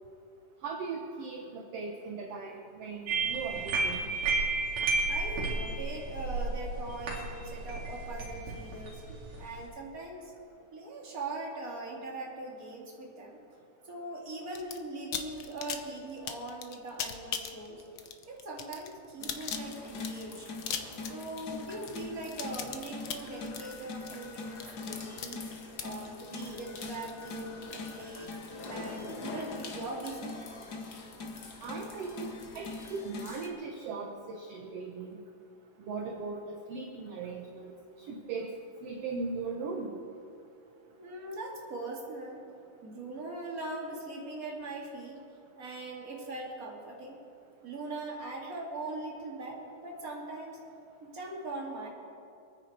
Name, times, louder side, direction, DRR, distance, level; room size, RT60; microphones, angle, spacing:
voice 1, 0.6-4.1 31.6-35.2 35.8-38.5 38.8-39.9, right 4 dB, 60° right, 2 dB, 1.9 m, -38 dB
sound 1, 3.1-9.6, right 3 dB, 90° right, 4.1 m, -32 dB
voice 2, 5.1-9.0 9.4-10.3 10.7-13.4 13.8-17.8 18.3-20.5 21.0-25.4 25.8-28.3 28.7-30.4 41.0-42.4 42.8-45.2 45.6-47.2 47.6-50.6 51.0-51.9, right 2 dB, 30° right, -2 dB, 2.6 m, -41 dB
sound 2, 14.5-14.8 15.1-27.4, left 8 dB, 75° left, 1.2 m, -39 dB
sound 3, 19.2-33.5, left 3 dB, 50° left, 1.2 m, -42 dB
27.0 x 9.8 x 4.4 m, 2.7 s
omnidirectional pair, 3.6 m